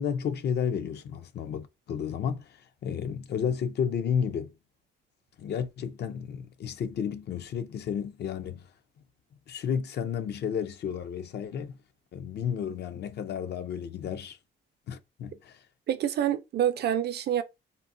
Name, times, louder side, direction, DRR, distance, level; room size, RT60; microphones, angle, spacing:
voice 1, 0.0-4.5 5.4-8.7 9.5-11.8 12.1-14.4 14.9-15.6, left 7 dB, 60° left, 0.5 m, -32 dB
voice 2, 15.9-17.4, right 10 dB, 55° right, 0.5 m, -27 dB
3.7 x 2.0 x 2.6 m
cardioid pair, 90°, 20 cm